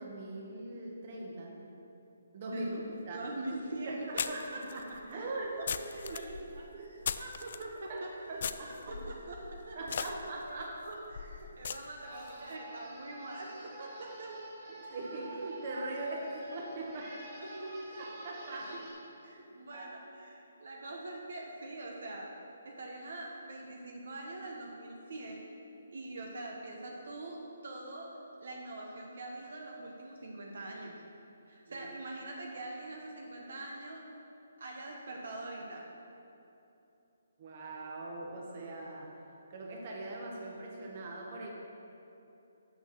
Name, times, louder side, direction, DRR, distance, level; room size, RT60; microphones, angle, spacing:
voice 1, 0.0-1.6 2.3-3.2 3.8-5.6 5.9-6.9 7.9-9.0 9.7-10.8 14.7-17.3 18.0-18.8 19.7-19.9 31.7-31.9 37.4-39.2 39.5-41.5, right 2 dB, 40° right, -1 dB, 1.3 m, -41 dB
voice 2, 2.5-2.8 3.1-4.8 5.1-5.3 5.6-8.1 8.4-10.2 10.5-14.3 17.4-18.1 18.4-18.8 19.2-22.3 22.6-25.5 25.9-28.1 28.4-31.0 31.5-34.1 34.6-35.9, right 2 dB, 65° right, -1 dB, 1.0 m, -44 dB
sound 1, 3.1-3.2 4.2-7.7 8.4-12.3, left 6 dB, 55° left, 0.3 m, -40 dB
sound 2, 12.0-18.9, right 1 dB, 25° right, 1.7 m, -48 dB
6.3 x 6.2 x 5.9 m, 2.8 s
hypercardioid pair, 155°, 0 cm